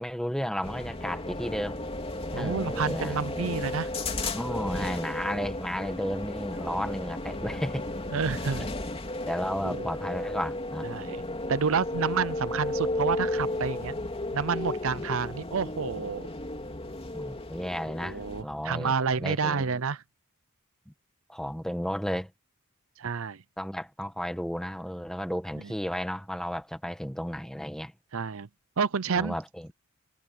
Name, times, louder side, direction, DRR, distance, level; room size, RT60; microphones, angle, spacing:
voice 1, 0.0-1.8 2.3-3.5 4.3-7.9 9.3-10.9 17.1-18.9 19.2-19.7 21.3-22.3 23.6-27.9 29.2-29.7, equal, 5° left, 1.7 m, -33 dB
sound 1, 0.6-18.4, left 2 dB, 25° left, 3.3 m, -34 dB
voice 2, 2.3-3.9 8.1-8.7 9.6-9.9 10.8-11.2 11.5-13.9 14.3-16.3 18.0-20.0 23.0-23.4 25.6-25.7 28.1-28.5 28.8-29.4, right 5 dB, 70° right, 0.7 m, -29 dB
head